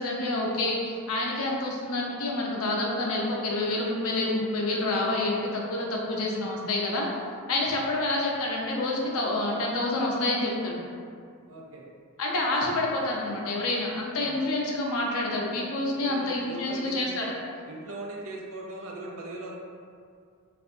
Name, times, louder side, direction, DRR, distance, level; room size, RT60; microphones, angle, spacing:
voice 1, 0.0-7.1 7.5-10.8 12.2-17.3, left 2 dB, 80° left, -2 dB, 0.5 m, -28 dB
voice 2, 11.5-11.8 14.2-14.4 15.9-17.4 17.7-19.5, right 2 dB, 70° right, -2 dB, 0.5 m, -40 dB
2.6 x 2.3 x 2.5 m, 2.2 s
head